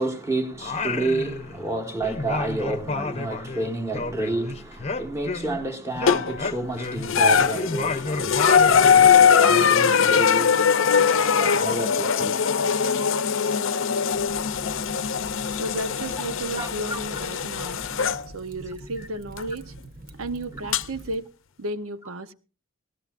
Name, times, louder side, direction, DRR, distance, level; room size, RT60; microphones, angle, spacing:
voice 1, 0.0-10.7 11.0-12.5 14.7-14.8 16.6-17.0 17.6-17.7 20.5-20.7, right 2 dB, 15° right, 1.5 m, -30 dB
Singing, 0.6-1.8 2.0-5.7 6.0-9.2, left 3 dB, 30° left, 0.8 m, -31 dB
sound 1, 6.1-6.5 7.0-18.2 19.4-19.5 20.7-20.8, left 6 dB, 70° left, 0.6 m, -21 dB
Fire, 14.1-21.2, right 1 dB, 45° right, 1.1 m, -44 dB
voice 2, 15.5-17.8 18.3-19.7 20.2-21.3 21.6-22.3, right 1 dB, 90° right, 0.9 m, -33 dB
20.5 x 18.0 x 2.5 m
head